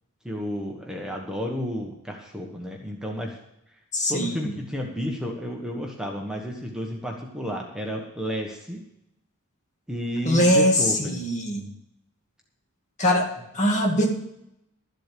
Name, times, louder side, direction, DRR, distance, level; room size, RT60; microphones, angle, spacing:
voice 1, 0.2-3.4 4.1-8.8 9.9-11.2, equal, 5° right, 0 dB, 1.2 m, -31 dB
voice 2, 3.9-4.5 10.3-11.7 13.0-14.2, equal, 35° left, 1 dB, 2.2 m, -22 dB
12.5 x 7.7 x 6.8 m, 0.80 s
head